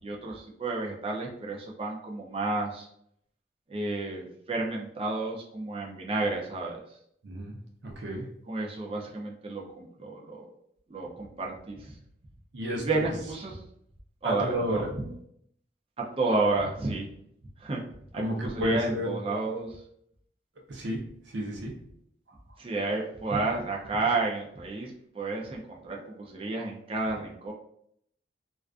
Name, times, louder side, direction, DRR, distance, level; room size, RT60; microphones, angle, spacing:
voice 1, 0.0-2.9 3.7-6.8 8.5-10.5 10.9-12.0 12.7-13.6 14.2-15.1 16.0-17.1 17.6-17.8 18.1-19.8 22.6-27.5, right 3 dB, 30° right, -1 dB, 0.4 m, -31 dB
voice 2, 7.2-7.6 7.8-8.2 12.5-13.1 14.2-14.9 18.2-19.2 20.7-21.0 21.3-21.7, equal, 75° right, 1 dB, 0.6 m, -31 dB
2.4 x 2.3 x 2.4 m, 0.71 s
head